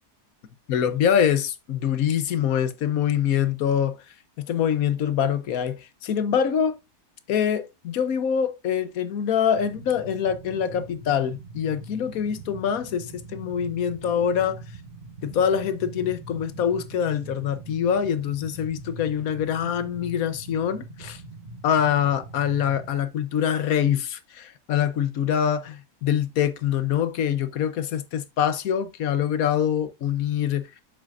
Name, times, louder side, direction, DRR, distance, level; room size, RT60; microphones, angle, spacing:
voice 1, 0.7-4.0 4.4-6.8 7.3-14.6 15.2-21.2 21.6-30.8, left 8 dB, 65° left, 1.2 m, -24 dB
sound 1, 9.5-22.9, right 2 dB, 35° right, 1.5 m, -42 dB
7.4 x 7.3 x 2.5 m
omnidirectional pair, 1.7 m